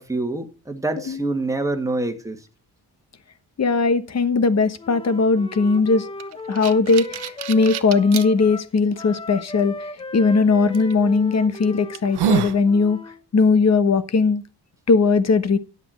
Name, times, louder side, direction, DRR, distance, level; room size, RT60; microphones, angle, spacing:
voice 1, 0.0-2.4, right 2 dB, 10° right, 1.8 m, -26 dB
voice 2, 3.6-6.1 6.5-13.0 13.3-14.4 14.9-15.6, left 4 dB, 45° left, 1.2 m, -19 dB
Wind instrument woodwind instrument, 4.8-13.2, left 2 dB, 15° left, 1.0 m, -37 dB
sound 1, 6.2-8.3 8.9-9.0 10.7-10.9 11.5-11.6 11.9-12.6, right 9 dB, 85° right, 0.9 m, -26 dB
11.0 x 7.7 x 4.4 m
cardioid pair, 110°, 38 cm